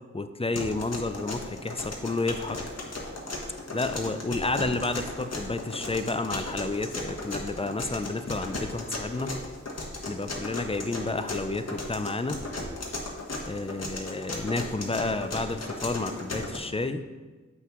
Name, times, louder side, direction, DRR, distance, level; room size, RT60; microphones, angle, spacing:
voice 1, 0.0-2.6 3.7-9.3 10.1-12.4 13.5-17.0, left 3 dB, 20° left, 10 dB, 0.5 m, -31 dB
sound 1, 0.6-16.6, left 2 dB, 50° left, 1.3 m, -36 dB
7.9 x 5.8 x 3.1 m, 1.3 s
cardioid pair, 40°, 33 cm